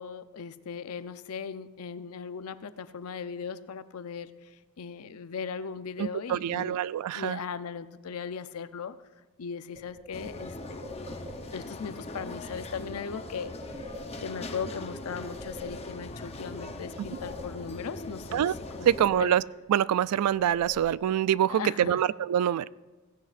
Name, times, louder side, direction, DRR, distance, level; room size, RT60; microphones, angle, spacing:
voice 1, 0.0-6.8 7.1-9.0 9.4-10.9 11.5-13.6 14.2-18.5 18.8-18.9 19.2-19.4 21.5-22.0, left 6 dB, 70° left, 13 dB, 0.5 m, -38 dB
voice 2, 6.0-7.4 18.3-18.5 18.8-19.4 19.7-22.7, right 10 dB, 90° right, 18 dB, 0.3 m, -25 dB
sound 1, 9.7-11.7 13.2-14.5 14.9-16.3 16.6-18.0 18.3-19.7 20.0-21.4, left 1 dB, 30° right, 2.2 m, -46 dB
sound 2, 10.1-19.0, left 2 dB, 30° left, 0.8 m, -41 dB
16.5 x 15.5 x 2.5 m, 1.2 s
head